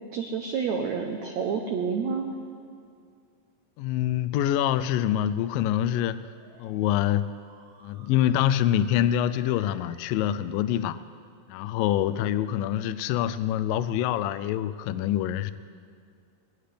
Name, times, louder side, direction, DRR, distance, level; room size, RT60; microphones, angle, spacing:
voice 1, 0.1-2.4, right 6 dB, 85° right, 2 dB, 1.6 m, -29 dB
voice 2, 3.8-6.2 6.6-7.3 7.8-11.0 11.5-15.5, left 11 dB, 80° left, 13 dB, 2.1 m, -25 dB
sound 1, 5.1-10.1, right 2 dB, 60° right, 6.0 m, -55 dB
20.5 x 18.0 x 3.4 m, 2.2 s
omnidirectional pair, 4.4 m